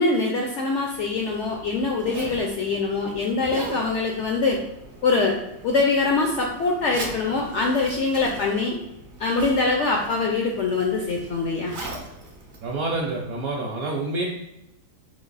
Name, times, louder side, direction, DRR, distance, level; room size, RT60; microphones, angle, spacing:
voice 1, 0.0-4.6 5.0-5.4 5.6-8.8 9.2-11.7, left 3 dB, 75° left, 1 dB, 0.6 m, -23 dB
Zipper (clothing), 0.8-13.4, right 2 dB, 50° right, 0.6 m, -41 dB
voice 2, 12.6-14.2, right 2 dB, 65° right, -2 dB, 1.0 m, -27 dB
3.9 x 2.9 x 3.9 m, 0.88 s
omnidirectional pair, 1.7 m